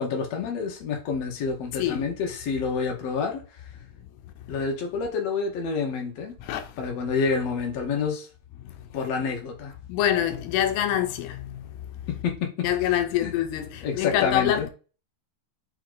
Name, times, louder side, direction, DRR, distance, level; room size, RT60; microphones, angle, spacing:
voice 1, 0.0-3.6 4.5-6.4 6.8-8.3 8.9-9.7 12.1-13.3 13.8-14.7, left 5 dB, 55° left, 2.1 m, -28 dB
voice 2, 6.4-6.7 8.6-8.7 9.9-11.6 12.6-14.7, left 11 dB, 80° left, 2.7 m, -25 dB
6.2 x 4.2 x 4.0 m
omnidirectional pair, 4.8 m